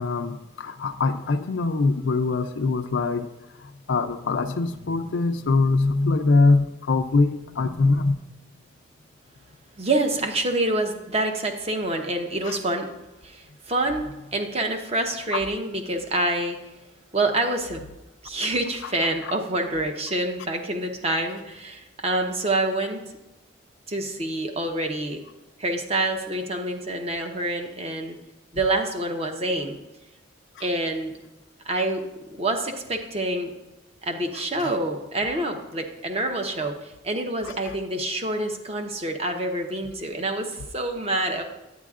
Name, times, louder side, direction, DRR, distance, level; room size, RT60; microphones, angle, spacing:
voice 1, 0.0-3.3 3.9-8.1 12.4-12.6 15.3-15.4 34.6-34.7 37.4-37.5, left 3 dB, 80° left, 6 dB, 0.5 m, -23 dB
voice 2, 9.8-12.9 13.2-16.6 17.1-17.8 18.2-23.1 23.9-25.2 25.6-28.2 28.5-29.8 30.6-31.1 31.6-32.0 32.3-33.5 34.0-41.4, right 2 dB, 30° right, 4 dB, 0.9 m, -27 dB
10.0 x 9.2 x 2.4 m, 0.97 s
head